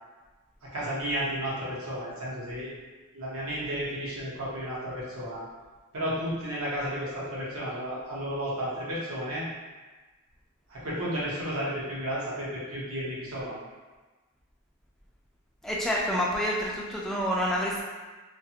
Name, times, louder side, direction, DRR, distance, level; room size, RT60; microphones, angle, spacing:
voice 1, 0.6-2.7 3.1-5.4 5.9-9.5 10.7-13.6, equal, 80° right, -7 dB, 0.9 m, -33 dB
voice 2, 15.6-17.8, equal, ahead, -4 dB, 0.3 m, -28 dB
2.4 x 2.4 x 2.8 m, 1.3 s
head